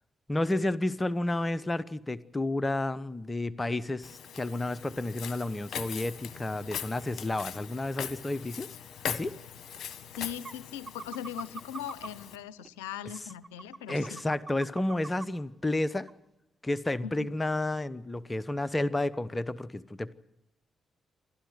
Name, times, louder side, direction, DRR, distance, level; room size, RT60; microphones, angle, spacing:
voice 1, 0.3-8.7 9.1-9.3 13.9-16.1 16.6-20.1, left 2 dB, 25° left, 17 dB, 1.0 m, -31 dB
Walk footsteps, 4.0-12.4, left 8 dB, 60° left, 1.5 m, -41 dB
sound 1, 9.8-9.9 10.4-10.6 10.9-12.1 12.6-12.7 13.1-15.2 15.7-15.8 16.1-16.2, right 4 dB, 40° right, 1.5 m, -42 dB
voice 2, 10.2-14.2 17.0-17.3, left 9 dB, 85° left, 18 dB, 0.7 m, -40 dB
28.0 x 13.0 x 8.0 m, 0.92 s
hypercardioid pair, 40°, 0 cm